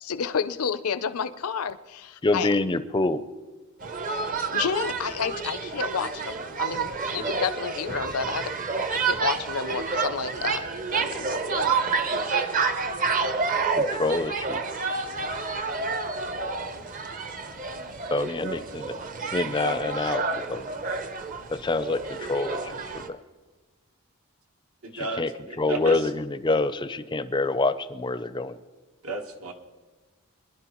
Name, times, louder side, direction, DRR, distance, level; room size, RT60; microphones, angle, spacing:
voice 1, 0.0-2.5 4.5-8.5 8.9-10.6 10.9-11.4, left 6 dB, 85° left, 13 dB, 0.6 m, -30 dB
voice 2, 2.2-3.2 13.8-14.6 18.1-18.9 19.3-20.7 21.5-22.6 22.9-23.0 24.9-25.3 25.6-28.6, left 2 dB, 20° left, 12 dB, 0.4 m, -26 dB
sound 1, 3.8-23.1, right 4 dB, 40° right, 0.7 m, -29 dB
voice 3, 24.8-26.0 29.0-29.5, right 3 dB, 75° right, 4 dB, 1.3 m, -33 dB
23.5 x 11.0 x 3.0 m, 1.3 s
head